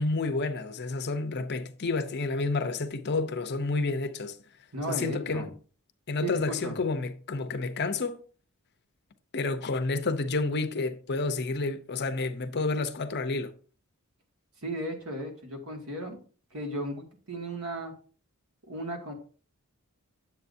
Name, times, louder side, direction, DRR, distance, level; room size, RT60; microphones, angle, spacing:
voice 1, 0.0-4.4 4.9-5.5 6.1-8.2 9.3-13.5, left 3 dB, 50° left, 0.7 m, -30 dB
voice 2, 4.7-5.5 6.2-6.7 14.6-16.2 16.5-17.9 18.7-19.1, right 1 dB, 75° right, 2.2 m, -35 dB
9.4 x 7.5 x 2.7 m
head